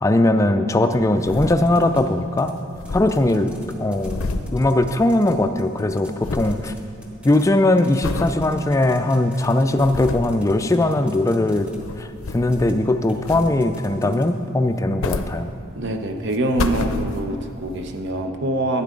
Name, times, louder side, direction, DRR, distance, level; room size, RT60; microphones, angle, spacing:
voice 1, 0.0-2.6 2.9-3.5 3.8-6.7 7.2-11.7 12.0-15.5, left 1 dB, 15° left, 9 dB, 0.3 m, -19 dB
sound 1, 1.0-2.1 2.3-2.4 2.6-5.4 5.7-6.7 7.1-7.4 8.0-8.4 8.9-9.0 9.5-10.4 11.4-12.9 13.2-13.8 14.7-15.9 16.3-17.5 18.1-18.2, left 3 dB, 80° left, 0.6 m, -30 dB
sound 2, 1.3-2.0 2.4-5.3 5.6-11.8 12.4-12.7 13.1-14.3, equal, 5° right, 1.1 m, -47 dB
voice 2, 15.7-18.8, right 1 dB, 55° right, 5 dB, 0.8 m, -24 dB
11.5 x 9.6 x 3.8 m, 2.8 s
head